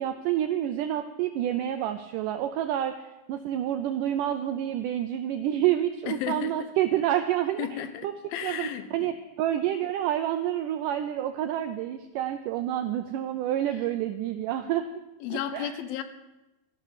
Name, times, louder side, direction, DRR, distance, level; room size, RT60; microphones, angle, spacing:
voice 1, 0.0-3.0 3.3-8.1 8.4-14.9 15.3-15.7, right 11 dB, 85° right, 8 dB, 1.8 m, -28 dB
voice 2, 6.1-6.7 7.6-9.1 15.2-16.0, left 10 dB, 80° left, 11 dB, 2.5 m, -34 dB
14.0 x 11.5 x 5.0 m, 0.97 s
omnidirectional pair, 4.4 m